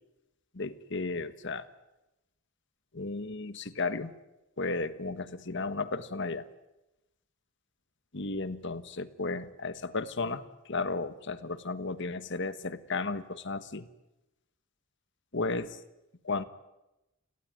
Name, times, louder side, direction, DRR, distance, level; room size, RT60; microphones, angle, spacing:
voice 1, 0.5-1.7 2.9-4.1 4.6-6.5 8.1-13.9 15.3-15.8 16.2-16.4, left 3 dB, 60° left, 12 dB, 1.4 m, -34 dB
30.0 x 18.5 x 9.4 m, 0.96 s
head